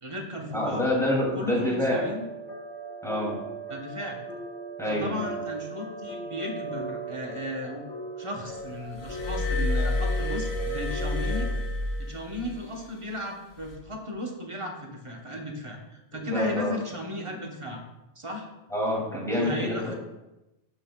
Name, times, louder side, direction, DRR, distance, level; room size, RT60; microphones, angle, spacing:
voice 1, 0.0-0.9 1.3-2.2 3.7-4.2 4.9-7.8 8.2-11.5 12.0-17.8 18.1-18.5 19.3-19.9, left 1 dB, 30° right, 0 dB, 1.1 m, -35 dB
voice 2, 0.5-2.1 3.0-3.4 4.8-5.2 16.3-16.7 18.7-19.9, left 1 dB, 5° left, -4 dB, 2.6 m, -27 dB
sound 1, 1.9-11.5, right 2 dB, 80° left, 2.2 m, -38 dB
Glass, 9.0-12.6 13.5-13.7, left 2 dB, 65° left, 1.3 m, -29 dB
13.5 x 5.4 x 2.4 m, 0.98 s
omnidirectional pair, 1.2 m